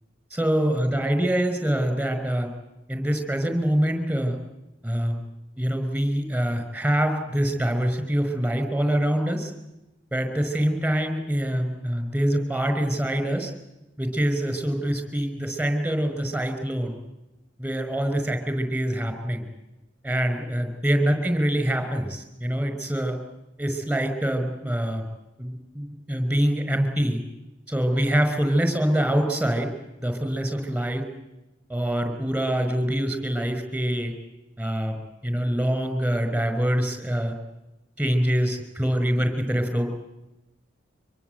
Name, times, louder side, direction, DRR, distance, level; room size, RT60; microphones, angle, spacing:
voice 1, 0.3-2.5 2.9-4.4 4.8-5.2 5.6-9.5 10.1-13.5 14.0-17.0 17.6-19.4 20.0-23.2 23.6-25.0 25.4-27.2 27.7-29.7 30.0-31.0 31.7-34.1 34.6-37.3 38.0-39.9, equal, 5° right, 7 dB, 5.1 m, -25 dB
25.0 x 23.0 x 8.0 m, 0.97 s
head